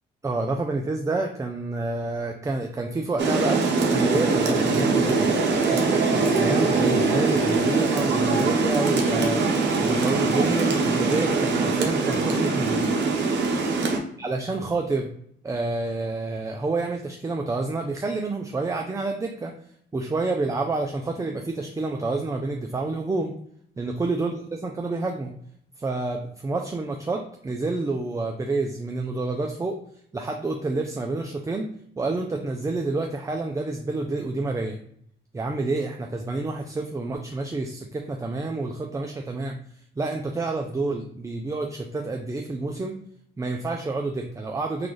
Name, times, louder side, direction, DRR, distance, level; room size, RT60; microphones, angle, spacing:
voice 1, 0.2-3.6 3.9-5.3 5.7-9.4 9.8-12.9 14.2-15.1 15.4-19.5 19.9-23.3 23.8-25.3 25.8-29.8 30.1-31.7 32.0-34.8 35.3-39.6 40.0-42.9 43.4-44.9, right 3 dB, 15° right, 2 dB, 0.4 m, -28 dB
Rain, 3.2-14.0, right 3 dB, 65° right, 0.9 m, -22 dB
3.9 x 2.4 x 3.2 m, 0.66 s
cardioid pair, 90°, 20 cm